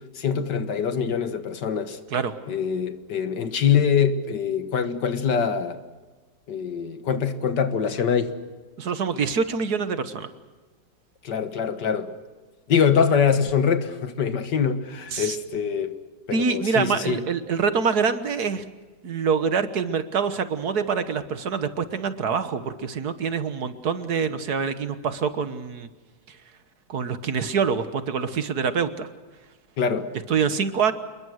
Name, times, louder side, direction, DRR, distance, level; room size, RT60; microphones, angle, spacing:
voice 1, 0.2-2.0 2.5-5.8 6.5-8.4 11.2-12.1 12.7-15.9 16.3-17.2 29.8-30.1, left 7 dB, 70° left, 2.1 m, -24 dB
voice 2, 8.8-10.3 15.1-15.3 16.3-18.6 19.0-25.9 26.9-29.1 30.3-30.9, right 6 dB, 60° right, 1.7 m, -25 dB
27.5 x 21.5 x 6.4 m
omnidirectional pair, 2.0 m